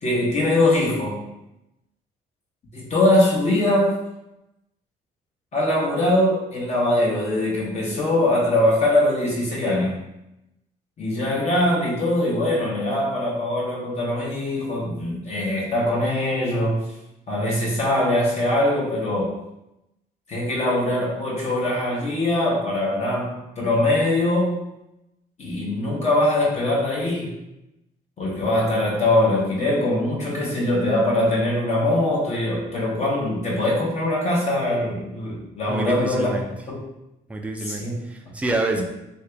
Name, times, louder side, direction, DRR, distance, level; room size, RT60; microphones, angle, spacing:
voice 1, 0.0-1.2 2.7-4.0 5.5-10.0 11.0-16.9 17.3-19.3 20.3-24.6 25.4-27.3 28.2-36.3 36.7-36.8 37.7-38.0 38.8-38.9, left 1 dB, 40° left, -5 dB, 0.9 m, -22 dB
voice 2, 35.7-36.5 37.3-38.8, right 2 dB, 10° right, 2 dB, 0.4 m, -27 dB
2.8 x 2.6 x 3.3 m, 0.88 s
cardioid pair, 110°, 17 cm